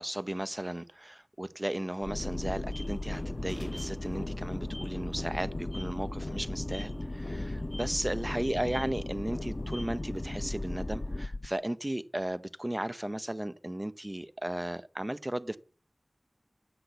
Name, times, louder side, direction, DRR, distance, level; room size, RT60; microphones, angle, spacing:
voice 1, 0.0-15.6, right 1 dB, 30° right, 0.8 m, -35 dB
sound 1, 2.0-11.5, left 2 dB, 75° left, 1.0 m, -38 dB
sound 2, 2.2-11.3, left 1 dB, 30° left, 0.6 m, -40 dB
10.0 x 6.0 x 8.0 m
wide cardioid pair, 45°, 0 cm